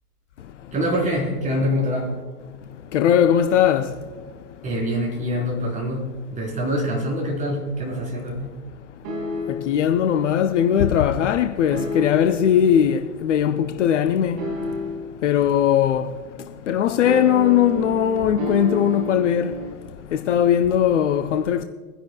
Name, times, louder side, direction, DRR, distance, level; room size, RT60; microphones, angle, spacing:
voice 1, 0.7-2.2 4.6-6.1 6.4-8.6, equal, 15° right, 4.2 m, -25 dB
voice 2, 2.9-3.9 9.5-14.4 15.2-16.1 16.7-19.6 20.1-21.6, left 9 dB, 50° left, 0.7 m, -19 dB
sound 1, 9.0-9.8 11.7-12.5 14.4-15.2 17.0-19.7, equal, 30° right, 2.7 m, -30 dB
23.0 x 10.5 x 2.3 m
figure-of-eight pair, 100°, 47 cm